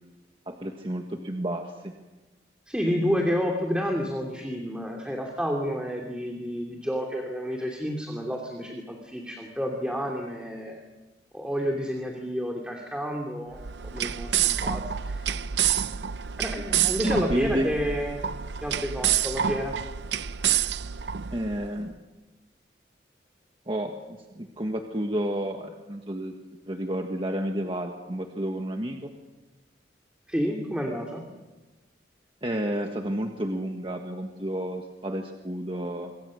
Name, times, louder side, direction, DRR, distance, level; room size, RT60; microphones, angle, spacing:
voice 1, 0.5-2.0 17.0-17.7 21.3-21.9 23.7-26.3 26.7-29.1 32.4-36.1, right 1 dB, 30° right, 3 dB, 1.6 m, -31 dB
voice 2, 2.7-10.8 11.3-13.6 13.9-15.3 16.4-18.3 18.6-19.8 30.3-31.2, equal, 5° right, 1 dB, 2.7 m, -30 dB
sound 1, 13.5-21.7, right 9 dB, 75° right, 0.7 m, -28 dB
27.0 x 23.5 x 6.5 m, 1.2 s
head